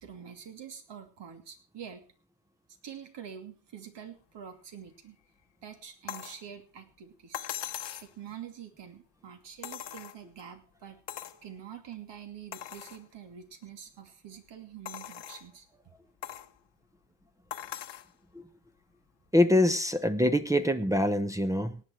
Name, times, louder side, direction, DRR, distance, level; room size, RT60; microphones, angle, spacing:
voice 1, 0.0-2.1 2.8-5.2 5.6-7.5 8.0-11.0 11.4-15.7, right 8 dB, 65° right, 2.8 m, -46 dB
sound 1, 6.1-6.4 7.3-8.1 9.6-10.4 11.1-11.4 11.9-12.0 12.5-13.0 13.6-13.7 14.9-15.5 16.2-16.5 17.5-18.1 19.3-19.4, left 11 dB, 65° left, 1.2 m, -40 dB
voice 2, 19.3-21.8, left 1 dB, 5° right, 0.9 m, -24 dB
18.5 x 9.4 x 4.6 m
cardioid pair, 105°, 46 cm